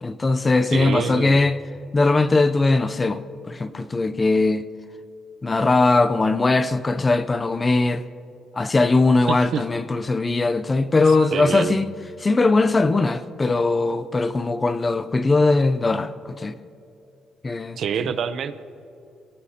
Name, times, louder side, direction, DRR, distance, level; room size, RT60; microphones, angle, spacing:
voice 1, 0.0-1.6 1.9-3.2 3.5-4.6 5.4-8.0 8.6-11.9 12.2-16.5 17.4-18.1, left 3 dB, 20° left, 0.5 m, -20 dB
voice 2, 0.7-1.4 9.3-9.6 11.3-11.8 17.8-18.6, right 7 dB, 60° right, 0.7 m, -26 dB
24.0 x 18.0 x 2.8 m
cardioid pair, 145°, 0 cm